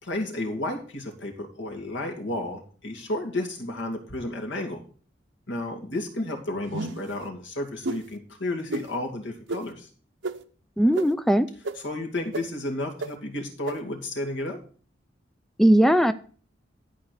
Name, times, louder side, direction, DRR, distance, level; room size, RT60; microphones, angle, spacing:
voice 1, 0.0-4.8 5.5-9.9 11.8-14.6, left 1 dB, 75° left, 2 dB, 2.5 m, -32 dB
sound 1, 6.7-7.1 7.8-8.0 8.7-8.8 9.5-9.6 10.2-10.3 10.9-11.0 11.6-11.7 12.3-12.4 13.0-13.1 13.7-13.8, right 2 dB, 75° right, 0.9 m, -30 dB
voice 2, 10.8-11.5 15.6-16.1, equal, ahead, 12 dB, 0.4 m, -18 dB
11.5 x 5.1 x 6.6 m, 0.41 s
head